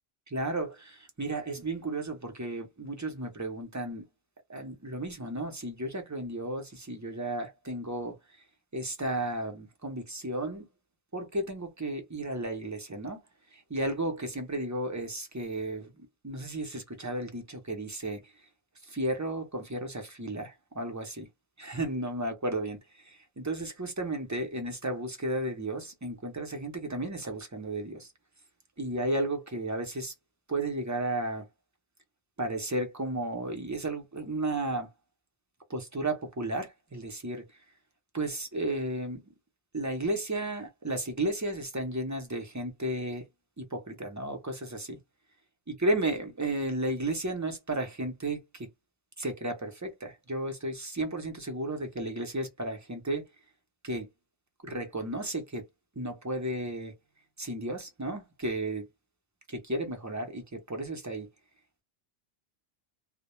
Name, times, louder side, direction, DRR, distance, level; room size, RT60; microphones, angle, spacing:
voice 1, 0.3-4.0 4.5-8.2 8.7-10.7 11.1-13.2 13.5-15.9 16.2-18.3 18.8-21.3 21.6-28.1 28.8-30.1 30.5-31.5 32.4-34.9 35.7-37.5 38.1-39.2 39.7-43.2 43.6-45.0 45.7-48.7 49.2-53.3 53.8-54.1 54.6-55.6 56.0-56.9 57.4-58.9 59.5-61.3, right 1 dB, 20° right, 0.5 m, -33 dB
2.2 x 2.1 x 2.9 m
omnidirectional pair, 1.1 m